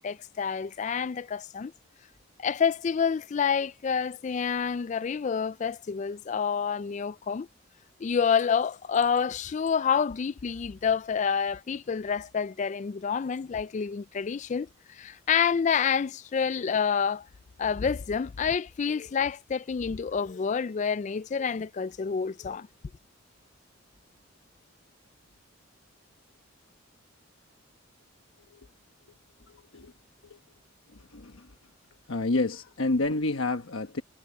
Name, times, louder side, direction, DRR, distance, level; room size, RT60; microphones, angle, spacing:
voice 1, 0.0-1.7 2.4-7.5 8.0-17.3 17.6-22.7, left 6 dB, 35° left, 0.3 m, -28 dB
voice 2, 29.5-29.9 30.2-30.4 30.9-31.5 32.1-34.0, left 2 dB, 75° left, 1.2 m, -30 dB
head